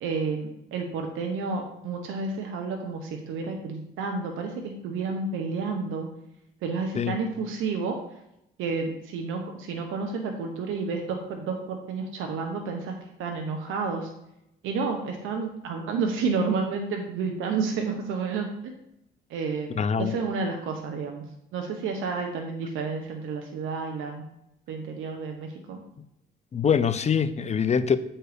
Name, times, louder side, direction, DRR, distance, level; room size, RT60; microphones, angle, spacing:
voice 1, 0.0-6.1 6.6-8.0 8.6-14.1 14.6-18.7 19.3-21.2 21.5-24.2 24.7-25.8, right 4 dB, 90° right, 1.0 m, -30 dB
voice 2, 19.8-20.1 26.5-28.0, left 7 dB, 35° left, 0.6 m, -24 dB
7.9 x 4.4 x 5.1 m
cardioid pair, 90°, 20 cm